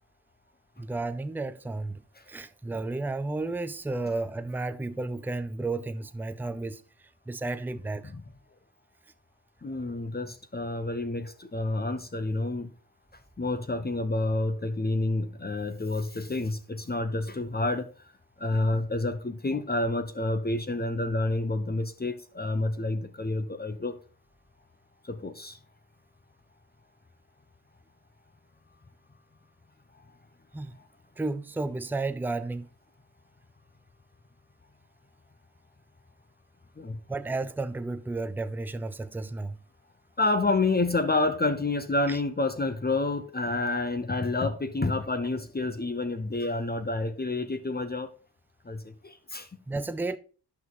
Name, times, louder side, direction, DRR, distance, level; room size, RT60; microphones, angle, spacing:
voice 1, 0.8-2.0 2.3-6.8 7.3-8.1 30.5-30.7 31.2-32.7 37.1-39.6 42.1-42.2 49.7-50.2, right 2 dB, 5° right, 0.5 m, -32 dB
voice 2, 9.6-12.7 13.4-17.9 18.4-23.9 25.0-25.6 36.8-37.0 40.2-48.1 48.6-49.5, left 2 dB, 25° left, 1.0 m, -29 dB
9.5 x 5.8 x 3.9 m
cardioid pair, 60°, 41 cm